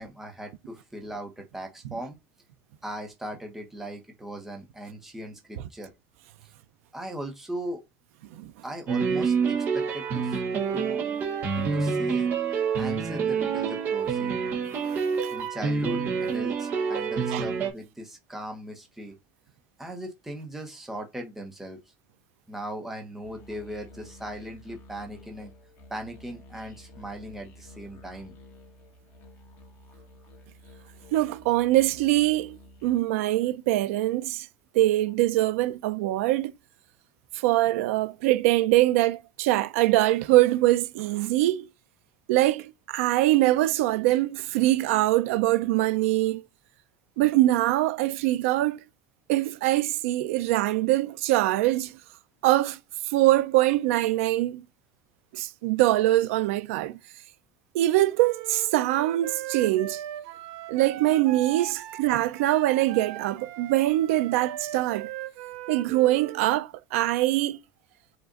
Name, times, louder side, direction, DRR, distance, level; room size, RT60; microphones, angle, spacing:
voice 1, 0.0-2.2 2.8-5.9 6.9-7.8 8.6-10.4 10.7-11.0 11.6-12.3 12.8-14.4 15.3-19.2 19.8-21.8 22.5-25.5 25.9-28.3, equal, 5° right, 1.0 m, -38 dB
sound 1, 8.9-17.7, right 6 dB, 30° right, 1.0 m, -27 dB
sound 2, 23.2-33.0, left 1 dB, 35° left, 1.5 m, -51 dB
voice 2, 31.1-34.5 34.7-36.5 37.3-41.7 42.3-46.4 47.2-48.8 49.3-52.0 52.4-52.8 53.1-54.6 55.3-57.0 57.7-60.0 60.7-65.1 65.7-67.6, right 16 dB, 90° right, 0.5 m, -23 dB
Wind instrument woodwind instrument, 58.1-66.5, right 13 dB, 50° right, 0.7 m, -39 dB
5.1 x 2.5 x 3.9 m
cardioid pair, 175°, 7 cm